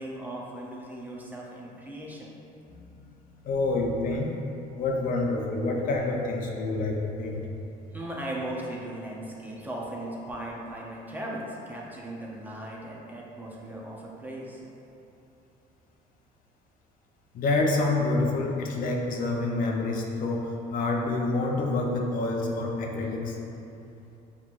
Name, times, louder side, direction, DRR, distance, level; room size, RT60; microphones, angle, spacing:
voice 1, 0.0-2.3 7.9-14.6, right 1 dB, 10° right, -4 dB, 0.6 m, -37 dB
voice 2, 2.7-3.1 3.4-4.3 4.8-7.4 17.3-23.4, left 2 dB, 55° left, 0 dB, 0.5 m, -27 dB
5.5 x 3.0 x 2.4 m, 2.8 s
cardioid pair, 110°, 17 cm